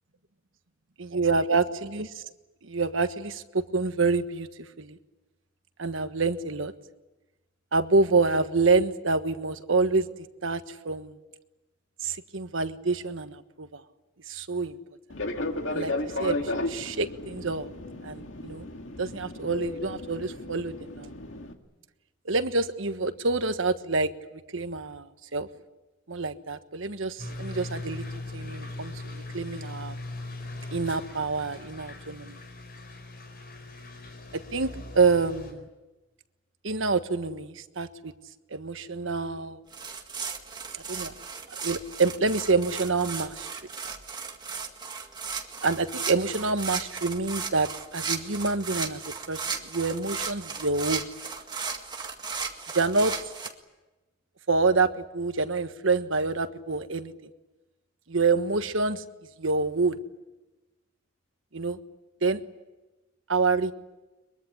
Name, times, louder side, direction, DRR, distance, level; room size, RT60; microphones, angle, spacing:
voice 1, 1.0-2.2 2.6-4.5 4.8-5.0 5.8-6.7 7.7-10.1 10.4-11.2 12.0-13.8 14.3-14.8 15.7-15.9 16.2-17.7 18.0-18.7 19.0-21.1 22.2-25.5 26.1-28.0 28.3-30.0 30.7-32.4 34.3-35.7 36.6-38.1 38.5-39.6 40.7-41.1 41.6-43.5 45.6-49.0 49.3-51.0 52.7-53.1 54.5-57.1 58.1-59.0 59.4-60.0 61.5-61.8 62.2-62.4 63.3-63.7, right 3 dB, 70° right, 9 dB, 1.4 m, -27 dB
Fixed-wing aircraft airplane, 15.1-21.5, left 2 dB, 65° left, 2.2 m, -34 dB
sound 1, 27.2-35.5, left 2 dB, 50° left, 4.9 m, -40 dB
sound 2, 39.7-53.5, right 5 dB, 20° right, 1.9 m, -36 dB
23.0 x 22.5 x 10.0 m, 1.1 s
head